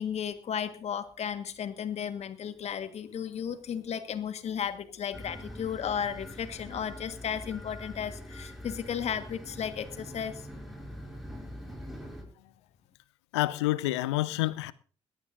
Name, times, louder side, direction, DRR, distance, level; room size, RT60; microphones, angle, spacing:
voice 1, 0.0-10.4, left 8 dB, 50° left, 1.6 m, -34 dB
sound 1, 5.1-12.2, equal, ahead, 6.4 m, -44 dB
voice 2, 13.3-14.7, left 17 dB, 75° left, 0.6 m, -28 dB
19.5 x 18.0 x 2.7 m
figure-of-eight pair, 40°, 14 cm